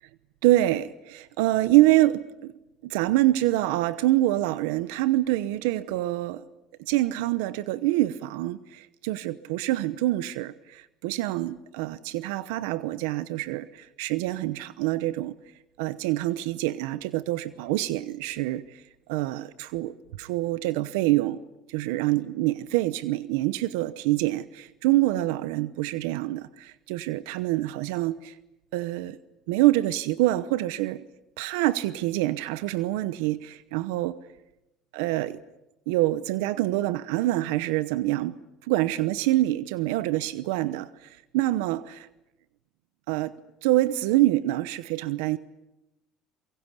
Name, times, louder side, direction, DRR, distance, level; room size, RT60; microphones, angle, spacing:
voice 1, 0.4-2.5 2.8-6.4 6.9-15.4 15.8-18.8 19.1-21.4 21.7-28.4 28.7-29.2 29.5-31.1 31.4-34.2 34.9-35.4 35.9-38.3 38.7-42.1 43.1-45.4, right 16 dB, 90° right, 0.9 m, -26 dB
25.5 x 23.0 x 8.3 m
supercardioid pair, 105°, 0 cm